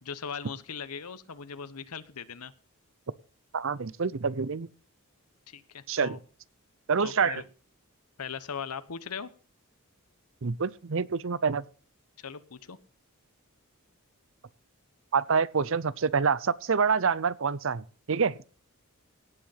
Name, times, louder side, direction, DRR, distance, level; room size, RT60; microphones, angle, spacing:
voice 1, 0.0-2.5 5.5-6.2 7.0-7.4 8.2-9.3 12.2-12.8, left 6 dB, 85° left, 13 dB, 1.0 m, -39 dB
voice 2, 3.5-4.7 5.9-6.2 6.9-7.4 10.4-11.6 15.1-18.4, right 5 dB, 60° right, 20 dB, 0.6 m, -27 dB
17.5 x 7.9 x 5.7 m, 0.40 s
head